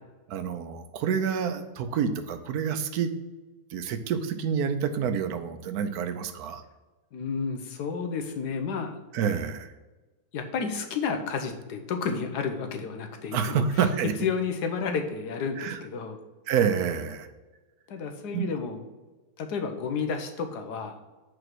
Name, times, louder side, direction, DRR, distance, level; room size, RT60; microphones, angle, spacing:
voice 1, 0.3-3.1 3.7-6.6 9.1-9.7 13.3-14.1 15.6-15.8 16.5-17.3 18.3-18.5, right 7 dB, 75° right, 9 dB, 1.1 m, -28 dB
voice 2, 7.1-9.0 10.3-13.6 14.2-16.2 17.9-18.8 19.4-21.0, left 5 dB, 85° left, 6 dB, 1.4 m, -31 dB
5.0 x 4.8 x 6.1 m, 1.2 s
omnidirectional pair, 1.7 m